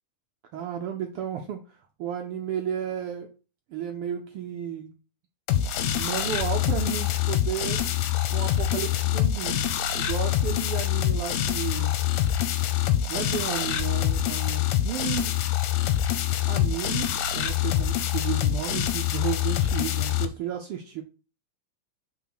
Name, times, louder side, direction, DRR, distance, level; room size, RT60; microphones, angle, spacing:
voice 1, 0.5-3.3 3.7-4.9 6.0-7.8 8.3-9.6 9.9-12.0 13.1-15.3 16.5-21.0, right 9 dB, 90° right, 4 dB, 1.2 m, -33 dB
sound 1, 5.5-20.3, left 11 dB, 85° left, 2.2 m, -25 dB
6.1 x 3.8 x 5.9 m, 0.33 s
omnidirectional pair, 3.4 m